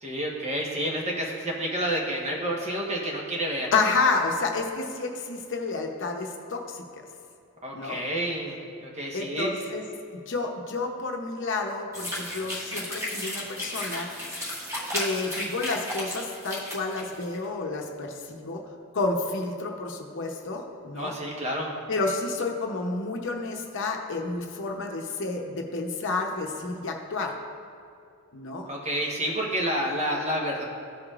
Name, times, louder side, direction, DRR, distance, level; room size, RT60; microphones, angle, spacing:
voice 1, 0.0-3.7 7.6-9.5 21.0-21.7 28.7-30.6, right 1 dB, 30° right, -2 dB, 1.2 m, -29 dB
voice 2, 3.7-6.8 7.7-8.0 9.1-9.8 10.3-14.1 14.9-18.6 18.9-21.1 21.9-27.4 28.3-28.7, left 3 dB, 60° left, 2 dB, 0.8 m, -30 dB
sound 1, 11.9-17.4, left 1 dB, 15° right, 1.7 m, -34 dB
14.5 x 4.9 x 2.4 m, 2.5 s
head